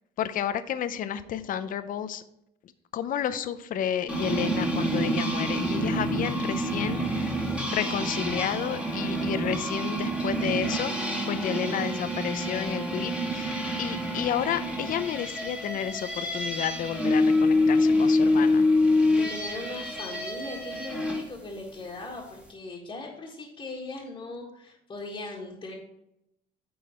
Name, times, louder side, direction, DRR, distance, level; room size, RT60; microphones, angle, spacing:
voice 1, 0.2-2.2 2.9-7.4 7.7-10.9 11.3-13.5 13.8-18.7, left 9 dB, 55° left, 12 dB, 0.6 m, -31 dB
sound 1, 4.1-21.2, left 1 dB, 5° right, 1.7 m, -27 dB
voice 2, 19.1-25.7, left 2 dB, 30° left, -5 dB, 1.7 m, -39 dB
9.5 x 3.9 x 4.3 m, 0.80 s
cardioid pair, 110°, 17 cm